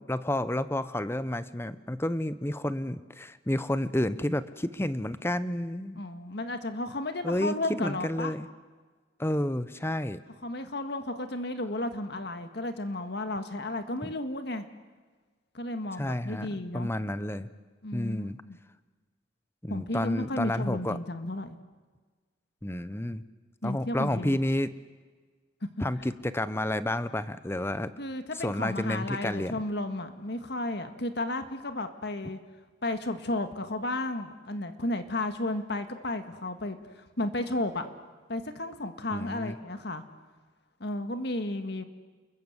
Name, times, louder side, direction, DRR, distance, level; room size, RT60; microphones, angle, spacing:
voice 1, 0.0-6.0 7.2-8.5 9.2-10.2 14.0-14.1 16.0-16.5 16.7-17.5 17.9-18.4 19.6-21.0 22.6-23.2 23.6-24.7 25.8-27.9 28.4-29.6 39.1-39.6, left 1 dB, 15° left, 14 dB, 0.9 m, -30 dB
voice 2, 6.0-8.3 10.4-14.7 15.5-16.9 17.8-18.3 19.7-21.6 23.6-24.4 25.8-25.9 28.0-32.4 32.8-37.9 38.3-40.0 40.8-41.8, left 1 dB, 60° left, 8 dB, 1.8 m, -33 dB
29.5 x 21.5 x 8.1 m, 1.4 s
head